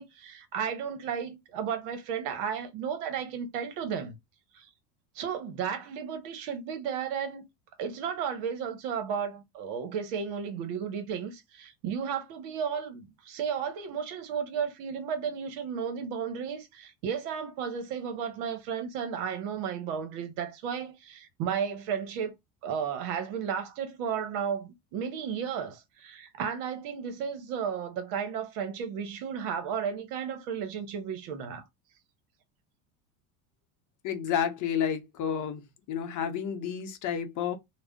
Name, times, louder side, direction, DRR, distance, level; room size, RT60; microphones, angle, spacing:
voice 1, 0.0-4.2 4.5-4.7 5.1-7.5 7.8-22.3 22.6-31.6, right 7 dB, 65° right, 1.0 m, -33 dB
voice 2, 34.0-37.6, left 8 dB, 45° left, 0.7 m, -31 dB
2.4 x 2.1 x 3.5 m
hypercardioid pair, 95°, 44 cm